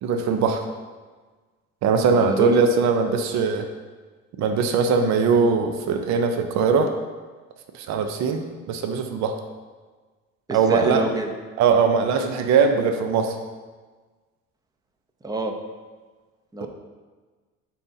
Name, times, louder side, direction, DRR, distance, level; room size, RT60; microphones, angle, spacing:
voice 1, 0.0-0.6 1.8-3.7 4.4-6.9 7.7-9.4 10.5-11.0 11.6-13.4 16.6-16.7, right 5 dB, 60° right, 6 dB, 0.6 m, -21 dB
voice 2, 2.1-2.6 10.5-11.3 15.2-15.5 16.5-16.7, right 2 dB, 10° right, 5 dB, 0.6 m, -27 dB
9.2 x 4.2 x 2.7 m, 1.4 s
cardioid pair, 110°, 31 cm